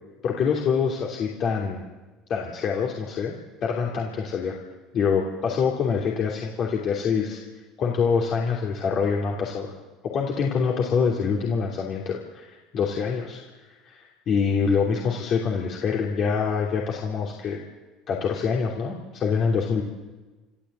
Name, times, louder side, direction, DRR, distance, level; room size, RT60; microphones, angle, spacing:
voice 1, 0.2-1.9 2.3-3.3 3.6-4.6 4.9-7.4 7.8-9.7 10.0-17.6 18.1-19.8, left 6 dB, 50° left, -1 dB, 3.1 m, -25 dB
28.5 x 12.5 x 8.2 m, 1.2 s
hypercardioid pair, 70°, 0 cm